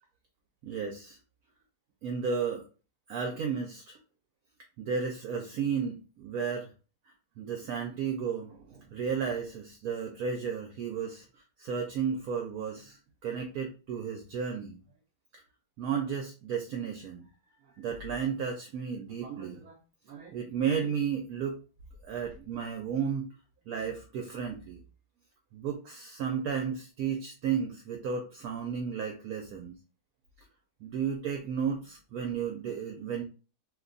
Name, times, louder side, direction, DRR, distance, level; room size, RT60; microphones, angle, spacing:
voice 1, 0.6-1.2 2.0-2.6 3.1-4.0 4.8-6.7 7.4-14.8 15.8-17.2 17.8-19.8 20.1-21.5 22.0-23.3 23.7-24.8 25.5-29.7 30.8-33.2, right 6 dB, 70° right, 3 dB, 0.9 m, -33 dB
2.8 x 2.2 x 3.8 m, 0.35 s
omnidirectional pair, 1.8 m